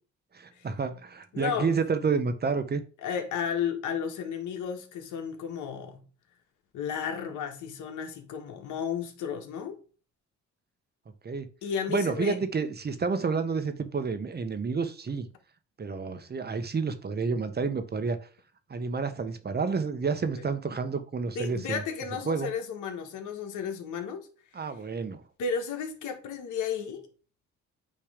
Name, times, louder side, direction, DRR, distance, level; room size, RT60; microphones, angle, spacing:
voice 1, 0.3-2.8 11.2-11.5 11.9-15.3 15.8-18.3 18.7-21.8 22.3-22.5 24.5-25.2, right 4 dB, 35° right, 1.1 m, -29 dB
voice 2, 1.3-1.7 3.0-6.1 6.7-9.8 11.6-12.4 20.4-20.5 21.4-24.3 25.4-27.0, left 7 dB, 80° left, 1.7 m, -33 dB
8.9 x 3.3 x 5.1 m
cardioid pair, 90°, 30 cm